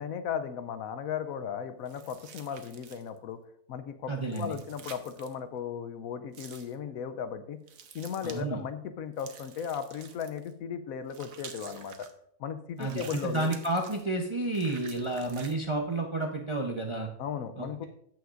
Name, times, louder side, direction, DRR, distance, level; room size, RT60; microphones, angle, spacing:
voice 1, 0.0-3.4 3.7-7.6 7.9-12.1 12.4-13.5 17.2-17.9, left 7 dB, 70° left, 10 dB, 1.0 m, -36 dB
sound 1, 1.8-3.2 4.2-5.3 6.3-6.7 7.7-8.4 9.2-10.5 11.1-12.1 12.8-14.1 14.5-15.5, right 7 dB, 65° right, 1.2 m, -49 dB
voice 2, 4.1-4.5 8.2-8.6 12.8-17.1 17.6-17.8, right 2 dB, 30° right, 2 dB, 0.5 m, -31 dB
14.5 x 5.9 x 2.5 m, 0.73 s
omnidirectional pair, 1.6 m